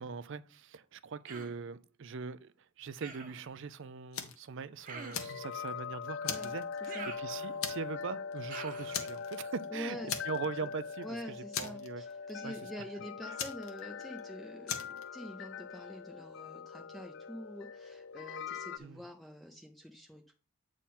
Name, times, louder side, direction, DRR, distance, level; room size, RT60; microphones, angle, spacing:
voice 1, 0.0-10.0 10.2-12.0 12.4-12.5 13.2-13.4 18.8-19.0, right 5 dB, 60° right, 0.4 m, -41 dB
Human voice, 1.3-1.6 3.0-3.5 4.8-5.4 6.9-7.8 8.5-9.0, right 4 dB, 40° right, 1.1 m, -46 dB
Fire, 4.1-4.5 4.9-5.8 6.2-7.2 7.6-8.0 8.3-8.5 8.9-9.7 10.1-10.7 10.9-11.0 11.5-12.3 13.4-14.2 14.7-15.0, left 8 dB, 80° left, 1.1 m, -39 dB
sound 1, 5.1-18.8, left 6 dB, 55° left, 0.4 m, -42 dB
voice 2, 9.7-10.1 10.6-10.7 11.0-20.3, equal, ahead, 0.6 m, -46 dB
8.7 x 3.8 x 4.2 m
head